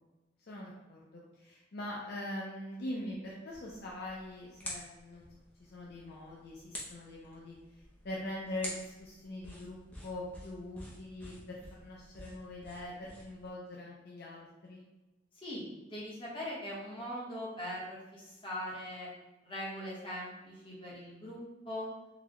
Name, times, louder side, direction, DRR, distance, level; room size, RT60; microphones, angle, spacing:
voice 1, 0.5-5.3 5.6-14.8, left 1 dB, 55° left, -4 dB, 0.5 m, -43 dB
sound 1, 3.5-13.5, left 1 dB, 10° left, 0.6 m, -49 dB
voice 2, 15.4-19.1 19.4-21.4 21.6-21.9, equal, 30° left, -6 dB, 1.0 m, -41 dB
3.8 x 2.2 x 2.9 m, 1.1 s
head